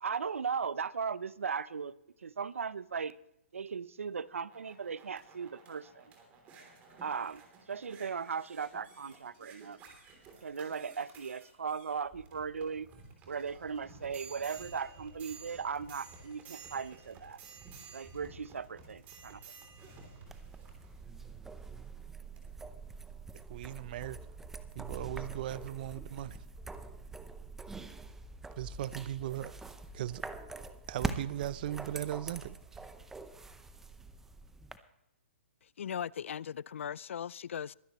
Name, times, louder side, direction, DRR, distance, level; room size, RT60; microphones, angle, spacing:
voice 1, 0.0-3.2 3.5-6.1 7.0-9.8 10.4-12.9 13.3-17.4 17.9-19.4, right 6 dB, 90° right, 0.6 m, -37 dB
sound 1, 4.2-21.8 22.4-22.5, right 4 dB, 20° right, 3.2 m, -54 dB
sound 2, 20.3-34.8, right 3 dB, 5° right, 0.7 m, -44 dB
voice 2, 23.5-24.2 24.7-26.4 28.6-29.5 29.9-30.3 30.9-32.6, right 12 dB, 45° right, 0.6 m, -38 dB
voice 3, 35.6-37.7, left 8 dB, 70° left, 0.4 m, -38 dB
22.5 x 10.5 x 3.1 m
hypercardioid pair, 150°, 7 cm